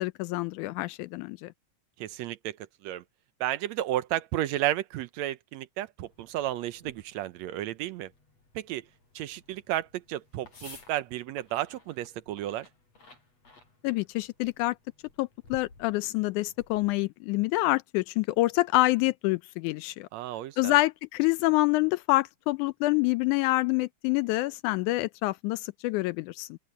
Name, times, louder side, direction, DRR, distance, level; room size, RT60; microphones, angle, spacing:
voice 1, 0.0-1.5 13.8-14.8 15.2-20.1 20.6-26.6, left 20 dB, 85° left, 2.0 m, -27 dB
voice 2, 2.0-2.6 2.8-3.0 3.4-8.1 8.6-8.9 9.2-12.7 20.1-20.8, right 13 dB, 75° right, 1.8 m, -32 dB
sound 1, 6.0-17.0, left 4 dB, 55° left, 8.8 m, -56 dB
open air
omnidirectional pair, 3.5 m